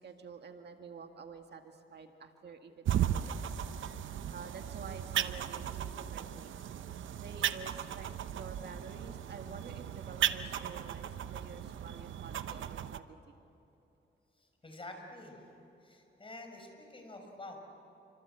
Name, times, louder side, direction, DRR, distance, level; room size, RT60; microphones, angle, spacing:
voice 1, 0.0-3.6 4.3-6.8 7.2-8.1 8.4-13.4, right 5 dB, 60° right, 5 dB, 1.8 m, -49 dB
sound 1, 2.9-13.0, right 10 dB, 80° right, 0.8 m, -36 dB
voice 2, 14.6-15.4 15.8-17.6, left 2 dB, 25° left, 3 dB, 5.6 m, -48 dB
29.0 x 25.0 x 7.9 m, 2.9 s
cardioid pair, 100°, 20 cm